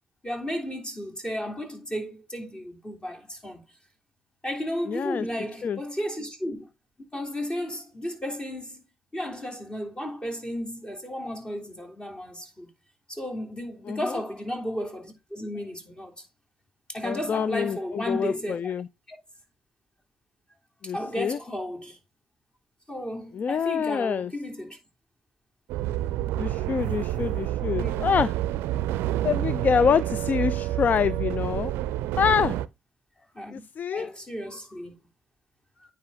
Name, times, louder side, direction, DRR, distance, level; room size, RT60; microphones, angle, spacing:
voice 1, 0.2-3.6 4.4-6.7 7.1-8.9 9.1-12.7 13.1-16.2 16.9-18.7 19.1-19.2 20.8-22.0 22.9-24.8 27.6-28.1 33.3-33.6 33.9-35.0, equal, 25° left, 3.3 m, -34 dB
voice 2, 4.9-5.3 5.6-5.8 13.9-14.2 17.0-18.9 20.8-21.4 23.3-24.3 26.4-28.3 29.2-31.7 32.2-32.6 33.5-34.1, left 7 dB, 45° left, 0.4 m, -26 dB
sound 1, 25.7-32.7, right 14 dB, 75° right, 0.4 m, -28 dB
9.5 x 5.2 x 3.8 m
hypercardioid pair, 50°, 4 cm